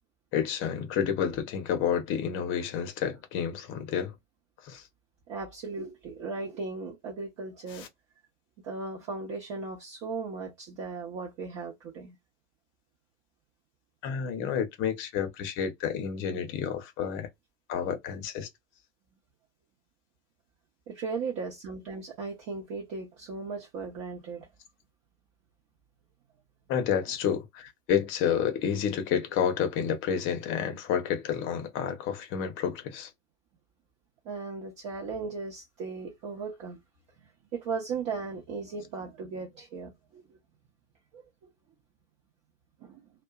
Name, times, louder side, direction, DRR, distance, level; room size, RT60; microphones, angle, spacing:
voice 1, 0.3-4.1 4.7-4.8 7.8-7.9 14.0-17.3 17.7-18.5 26.7-33.1, left 8 dB, 30° left, 0.8 m, -30 dB
voice 2, 5.3-7.9 8.6-12.2 20.9-24.5 34.2-36.8 37.5-40.4 41.1-41.5 42.8-43.0, right 4 dB, 35° right, 0.8 m, -37 dB
2.5 x 2.2 x 2.4 m
figure-of-eight pair, 90°, 40 cm